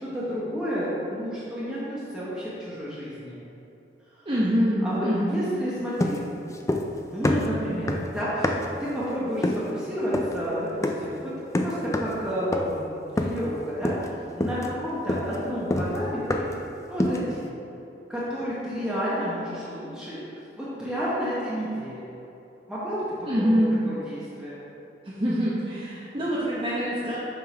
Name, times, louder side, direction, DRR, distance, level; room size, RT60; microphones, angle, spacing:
voice 1, 0.0-3.4 4.8-6.2 7.1-11.3 11.6-16.5 16.9-17.5 18.1-20.2 20.6-22.0 22.7-23.0 23.5-24.6, equal, 5° right, -10 dB, 1.0 m, -30 dB
voice 2, 4.3-5.4 23.2-23.8 25.0-27.2, equal, 30° right, -8 dB, 0.8 m, -25 dB
sound 1, 6.0-7.0 7.2-8.8 9.4-9.7 10.1-10.4 10.8-11.1 11.5-12.2 12.5-12.8 13.2-13.5 13.8-14.1 14.4-16.6 17.0-17.3, left 1 dB, 15° left, 0.3 m, -27 dB
7.1 x 3.8 x 4.9 m, 2.9 s
head